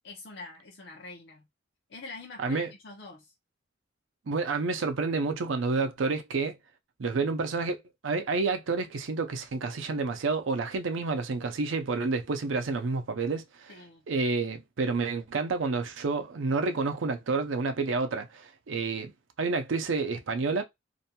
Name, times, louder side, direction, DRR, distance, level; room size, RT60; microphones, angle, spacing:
voice 1, 0.0-1.5 1.9-3.3 13.7-14.0, left 3 dB, 65° left, 0.5 m, -45 dB
voice 2, 4.3-6.6 7.0-13.7 14.1-19.1 19.4-20.6, right 4 dB, 90° right, 0.5 m, -29 dB
2.6 x 2.2 x 2.8 m
head